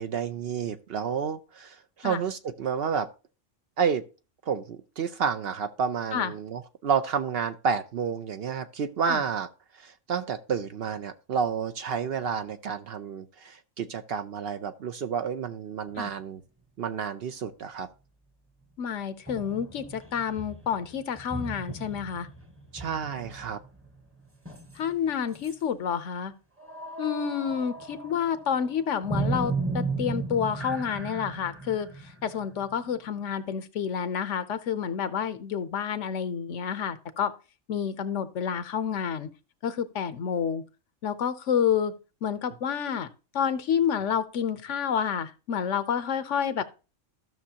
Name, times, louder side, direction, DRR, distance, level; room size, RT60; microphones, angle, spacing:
voice 1, 0.0-3.1 3.8-4.0 4.5-9.5 9.8-16.4 16.8-17.9 22.7-23.6 46.6-46.7, right 7 dB, 60° right, 0.7 m, -30 dB
voice 2, 18.8-22.3 24.7-26.3 27.0-37.3 37.7-39.3 39.6-40.6 41.0-41.9 42.2-43.1 43.3-46.6, left 8 dB, 70° left, 1.0 m, -29 dB
sound 1, 19.3-25.1 25.3-25.6 26.6-33.2, right 3 dB, 10° right, 0.9 m, -36 dB
14.0 x 6.3 x 2.8 m
omnidirectional pair, 1.3 m